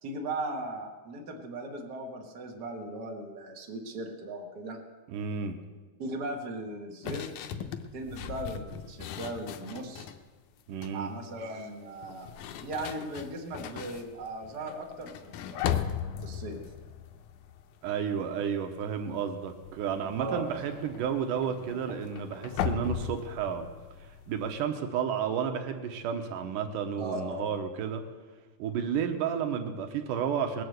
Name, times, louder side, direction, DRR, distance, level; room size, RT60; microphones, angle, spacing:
voice 1, 0.0-4.8 6.0-7.3 7.9-10.1 10.9-12.3 12.6-15.9 16.2-16.6 20.1-20.5 27.0-27.5, right 1 dB, 40° right, 0 dB, 1.9 m, -38 dB
voice 2, 5.1-5.6 10.7-11.1 17.8-23.7 24.0-28.0 28.6-30.6, right 7 dB, 80° right, 6 dB, 2.5 m, -32 dB
sound 1, 7.0-10.2 10.6-11.1 12.0-18.2 18.5-18.9 19.1-24.6, left 9 dB, 75° left, 2.2 m, -38 dB
20.0 x 6.8 x 8.0 m, 1.3 s
omnidirectional pair, 3.7 m